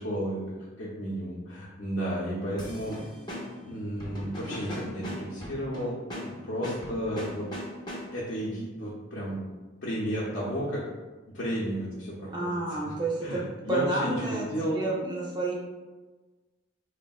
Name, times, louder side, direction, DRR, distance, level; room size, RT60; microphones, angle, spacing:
voice 1, 0.0-3.0 3.6-7.5 8.1-9.4 9.8-10.8 11.3-12.9 13.2-14.9, equal, 65° left, -7 dB, 0.6 m, -33 dB
sound 1, 2.6-8.3, equal, 20° left, 0.5 m, -39 dB
voice 2, 12.3-14.5 14.7-15.5, right 2 dB, 25° right, -4 dB, 0.6 m, -30 dB
3.4 x 2.1 x 2.3 m, 1.2 s
head